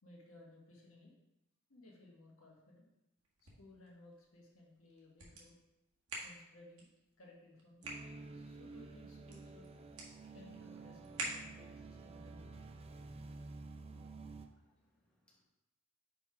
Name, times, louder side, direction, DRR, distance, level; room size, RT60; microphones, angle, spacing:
voice 1, 0.0-1.1 1.7-2.9 3.4-5.6 6.2-6.9 7.2-8.1 8.3-9.7 10.3-12.5, left 2 dB, 70° left, -2 dB, 1.5 m, -60 dB
sound 1, 3.2-11.9, right 2 dB, 75° right, 1.6 m, -50 dB
sound 2, 7.8-14.5, right 3 dB, 25° right, 0.4 m, -51 dB
voice 2, 13.9-15.4, left 1 dB, 5° left, -4 dB, 1.0 m, -77 dB
5.3 x 4.8 x 4.8 m, 0.95 s
head